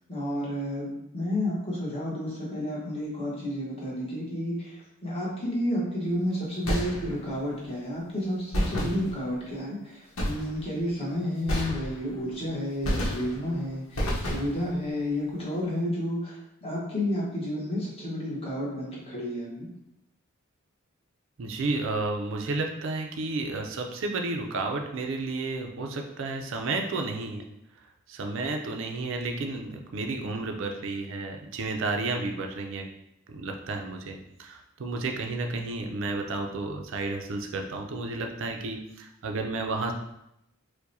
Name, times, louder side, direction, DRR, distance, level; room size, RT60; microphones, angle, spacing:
voice 1, 0.1-19.7, left 1 dB, 30° left, -5 dB, 1.0 m, -31 dB
sound 1, 6.7-7.4 8.5-9.5 10.2-10.8 11.5-12.3 12.8-13.6 14.0-14.8, equal, 80° left, 0.9 m, -30 dB
voice 2, 21.4-27.5 28.1-32.9 33.3-39.9, right 3 dB, 65° right, 3 dB, 0.4 m, -32 dB
4.6 x 2.1 x 2.6 m, 0.83 s
head